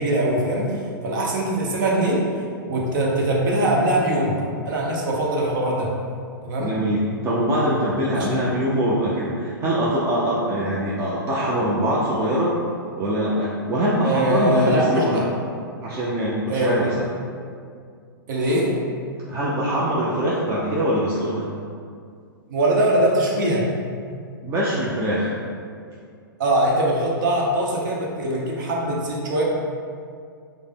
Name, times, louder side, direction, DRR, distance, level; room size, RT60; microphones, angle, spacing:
voice 1, 0.0-2.2 2.7-4.3 4.6-5.9 6.4-6.7 8.1-8.4 14.0-15.2 16.5-16.9 18.3-18.7 22.5-23.6 26.4-29.4, right 1 dB, 55° right, -2 dB, 0.9 m, -22 dB
voice 2, 6.6-12.6 13.0-15.2 15.8-16.8 19.3-21.5 24.4-25.3, equal, 25° right, -6 dB, 0.5 m, -23 dB
4.8 x 2.1 x 3.5 m, 2.2 s
hypercardioid pair, 115°, 12 cm